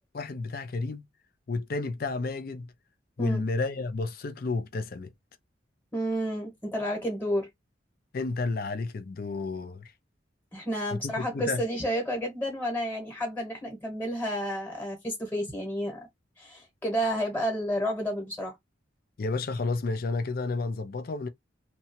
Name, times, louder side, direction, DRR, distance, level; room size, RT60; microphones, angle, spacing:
voice 1, 0.1-1.0 1.5-2.7 3.2-5.1 8.1-9.9 10.9-11.6 19.2-21.3, left 3 dB, 50° left, 0.5 m, -31 dB
voice 2, 5.9-7.5 10.5-16.1 16.4-18.5, equal, 10° left, 1.1 m, -31 dB
2.9 x 2.2 x 2.8 m
head